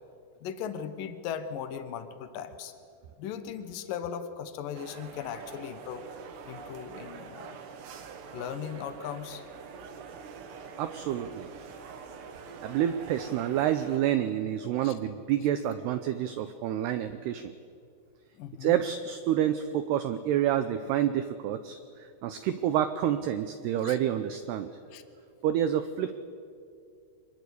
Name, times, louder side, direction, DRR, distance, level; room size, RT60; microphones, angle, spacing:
voice 1, 0.4-2.7 3.2-6.1 6.5-7.6 8.3-9.4 14.8-14.9 18.4-18.8 23.8-24.0 24.9-25.0, left 8 dB, 85° left, 9 dB, 1.9 m, -38 dB
sound 1, 4.7-14.0, right 5 dB, 65° right, 3.5 m, -45 dB
voice 2, 10.8-11.5 12.6-17.5 18.6-24.7 25.4-26.1, right 11 dB, 85° right, 10 dB, 2.3 m, -28 dB
25.5 x 22.0 x 8.4 m, 2.4 s
omnidirectional pair, 5.8 m